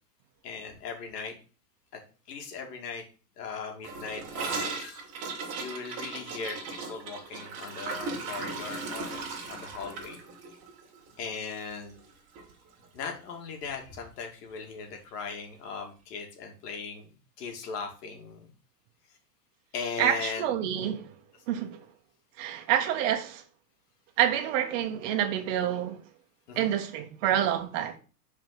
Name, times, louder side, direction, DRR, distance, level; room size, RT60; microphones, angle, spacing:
voice 1, 0.4-1.3 2.3-3.0 3.4-5.1 5.6-9.2 9.5-10.2 11.2-12.0 12.9-17.1 17.4-18.5 19.7-20.5 21.5-21.6 26.5-26.7, left 5 dB, 70° left, 2.5 m, -38 dB
Gurgling / Toilet flush, 3.8-12.1 12.4-12.5 12.8-13.2 13.5-13.6 13.9-14.0 14.9-15.0, right 4 dB, 30° right, 2.3 m, -37 dB
voice 2, 20.0-21.1 21.5-21.8 22.4-23.4 24.2-26.0 26.5-27.9, right 10 dB, 50° right, 1.5 m, -27 dB
6.0 x 4.9 x 5.9 m
supercardioid pair, 145°, 48 cm